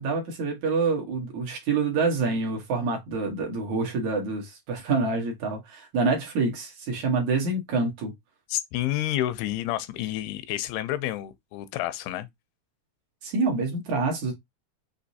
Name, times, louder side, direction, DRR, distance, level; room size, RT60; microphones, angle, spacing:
voice 1, 0.0-8.1 13.2-14.3, right 4 dB, 65° right, 2.0 m, -27 dB
voice 2, 8.5-12.3, left 14 dB, 85° left, 2.5 m, -29 dB
6.2 x 2.7 x 2.7 m
omnidirectional pair, 4.5 m